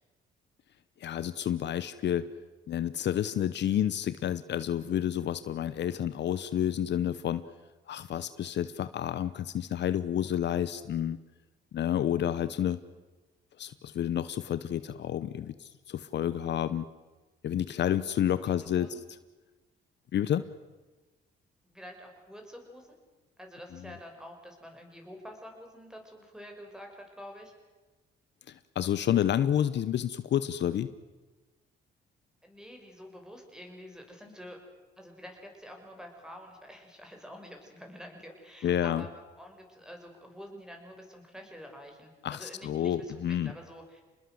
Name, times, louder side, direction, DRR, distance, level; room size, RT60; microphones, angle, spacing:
voice 1, 1.0-2.2 2.7-7.4 7.9-11.2 11.7-12.8 13.6-16.8 17.4-19.0 20.1-20.5 23.8-23.9 28.5-30.9 38.6-39.0 42.2-43.5, left 10 dB, 65° left, 14 dB, 0.9 m, -30 dB
voice 2, 18.6-19.0 21.6-22.9 23.4-27.5 32.4-34.6 35.0-39.1 39.4-44.0, equal, 5° right, 3 dB, 6.5 m, -48 dB
27.0 x 20.5 x 7.9 m, 1.2 s
cardioid pair, 90°, 20 cm